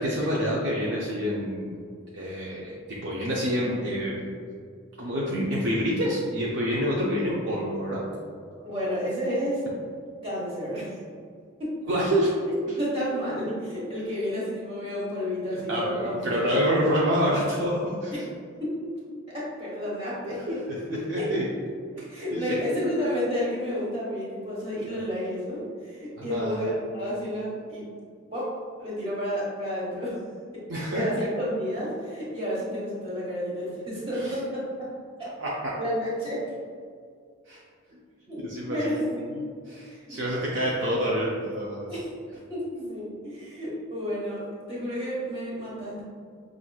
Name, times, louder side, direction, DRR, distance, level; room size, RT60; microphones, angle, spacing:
voice 1, 0.0-1.9 2.1-4.2 5.0-8.0 11.9-12.3 12.7-12.8 15.7-18.1 20.3-21.5 22.0-22.4 24.9-25.0 26.2-26.7 30.7-31.0 34.2-34.3 35.4-35.8 37.5-37.6 38.4-38.9 39.7-41.9, equal, 55° right, -5 dB, 0.5 m, -27 dB
voice 2, 8.6-9.6 10.2-11.0 11.6-11.8 12.4-16.8 18.1-18.2 18.6-18.8 19.3-20.6 21.1-21.3 22.1-27.8 28.3-30.2 30.9-34.9 35.8-36.5 38.3-38.4 38.7-39.3 39.9-40.2 40.7-41.0 41.9-42.1 42.5-44.4 44.7-46.0, equal, 25° right, -7 dB, 1.1 m, -31 dB
5.7 x 2.4 x 2.3 m, 2.1 s
head